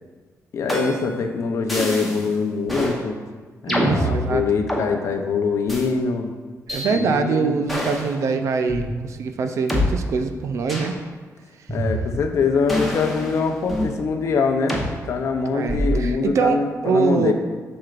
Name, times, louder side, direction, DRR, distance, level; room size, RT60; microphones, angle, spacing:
voice 1, 0.5-3.2 3.6-6.3 6.9-7.6 11.7-17.3, left 5 dB, 55° left, 5 dB, 0.6 m, -23 dB
sound 1, 0.7-1.2 1.7-2.3 2.7-3.0 3.7-4.9 5.7-5.9 6.7-6.9 7.7-8.1 8.7-8.8 9.7-9.8 10.7-11.0 11.7-12.3 12.7-14.0 14.7-14.9 15.7-16.1, equal, ahead, 0.9 m, -25 dB
voice 2, 3.7-4.4 6.7-11.0 15.5-17.3, right 5 dB, 60° right, 7 dB, 0.5 m, -23 dB
7.6 x 6.3 x 2.5 m, 1.4 s
wide cardioid pair, 175°, 6 cm